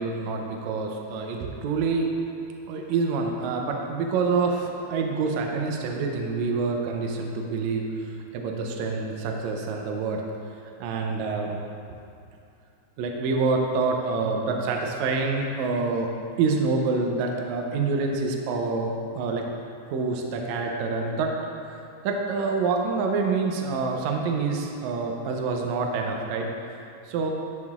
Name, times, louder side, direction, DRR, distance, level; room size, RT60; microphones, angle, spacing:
voice 1, 0.0-2.1 2.7-10.2 10.8-11.6 13.0-16.1 16.4-19.5 19.9-21.3 22.0-26.5 27.1-27.3, right 4 dB, 80° right, 1 dB, 1.9 m, -27 dB
11.0 x 7.3 x 2.4 m, 2.5 s
omnidirectional pair, 3.4 m